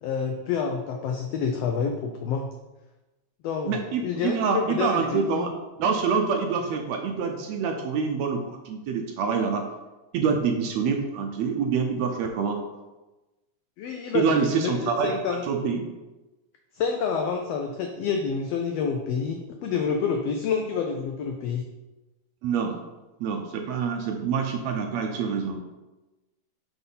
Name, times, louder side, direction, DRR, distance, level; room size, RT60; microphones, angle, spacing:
voice 1, 0.0-2.5 3.4-5.5 13.8-15.4 16.7-21.6, left 6 dB, 90° left, 3 dB, 1.4 m, -28 dB
voice 2, 3.7-5.5 5.8-9.6 10.1-12.6 14.1-15.8 22.4-22.7 23.2-25.6, right 5 dB, 75° right, 3 dB, 1.7 m, -26 dB
5.9 x 4.0 x 5.4 m, 1.1 s
omnidirectional pair, 3.5 m